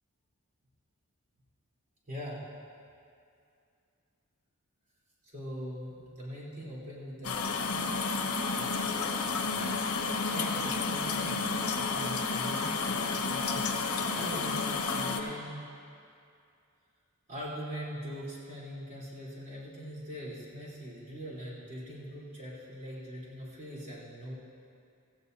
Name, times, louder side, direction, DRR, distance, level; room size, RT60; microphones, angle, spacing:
voice 1, 2.1-2.4 5.2-7.4 7.6-7.9 8.6-8.7 9.3-9.8 10.3-14.6 14.9-15.6 17.3-24.3, equal, 40° right, -7 dB, 3.7 m, -42 dB
sound 1, 7.2-15.2, left 4 dB, 90° left, 1.0 m, -31 dB
17.5 x 14.5 x 2.8 m, 2.5 s
head